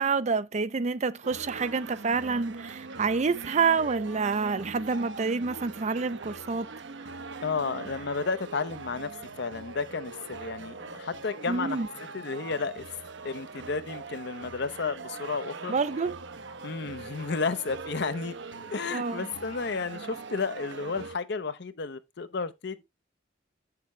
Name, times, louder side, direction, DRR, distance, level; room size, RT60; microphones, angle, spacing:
voice 1, 0.0-6.7 11.5-11.9 15.7-16.2 18.9-19.3, right 4 dB, 35° right, 0.5 m, -28 dB
sound 1, 1.2-21.2, right 4 dB, 65° right, 0.8 m, -42 dB
voice 2, 7.4-9.1 9.4-11.8 12.1-12.8 13.2-15.7 16.6-18.4 18.7-22.8, left 4 dB, 60° left, 0.7 m, -32 dB
8.4 x 6.7 x 3.1 m
head